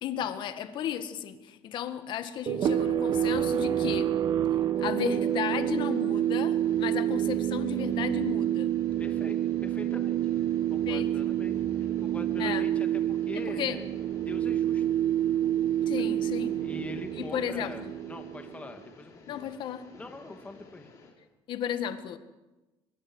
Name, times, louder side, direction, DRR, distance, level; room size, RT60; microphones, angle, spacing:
voice 1, 0.0-4.1 4.8-8.7 10.9-11.1 12.4-12.7 13.3-13.8 15.9-16.5 17.2-17.7 19.3-19.9 21.5-22.2, left 9 dB, 50° left, 9 dB, 1.9 m, -34 dB
sound 1, 2.5-18.7, right 11 dB, 45° right, 1.3 m, -28 dB
sound 2, 4.7-21.1, left 4 dB, 35° left, 5.5 m, -54 dB
voice 2, 8.9-10.2 10.7-13.9 14.2-14.8 16.0-16.1 16.6-19.4 19.9-20.9, left 3 dB, 15° left, 5 dB, 2.7 m, -44 dB
25.0 x 22.0 x 6.5 m, 1.1 s
cardioid pair, 145°, 10 cm